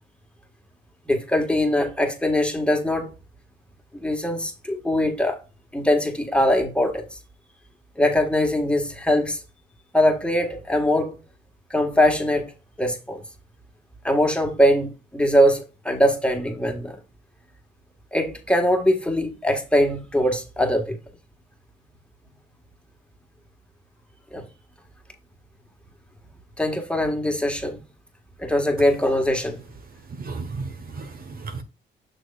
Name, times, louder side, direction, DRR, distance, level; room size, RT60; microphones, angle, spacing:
voice 1, 1.1-3.1 3.9-5.4 5.7-7.2 8.0-9.4 9.9-11.2 11.7-12.5 12.8-13.2 14.0-17.0 18.1-21.0 24.3-24.4 26.6-27.8 28.4-29.6, left 1 dB, 5° left, 1.7 m, -22 dB
voice 2, 30.2-31.6, right 4 dB, 50° right, 1.3 m, -34 dB
6.5 x 6.3 x 2.5 m
cardioid pair, 90°, 20 cm